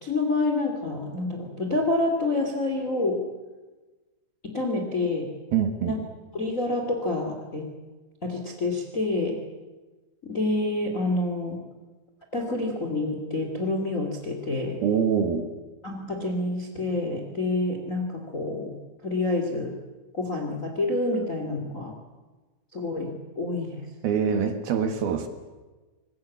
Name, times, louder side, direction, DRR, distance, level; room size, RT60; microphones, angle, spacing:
voice 1, 0.0-3.2 4.4-5.3 5.9-6.0 6.3-7.7 8.2-9.4 10.2-11.6 12.3-14.8 15.8-18.7 19.0-19.7 20.1-21.9 22.7-23.9, left 2 dB, 25° left, 4 dB, 1.7 m, -28 dB
voice 2, 5.5-6.0 14.8-15.5 24.0-25.3, right 7 dB, 65° right, 8 dB, 3.1 m, -24 dB
24.5 x 21.0 x 8.6 m, 1.2 s
omnidirectional pair, 5.3 m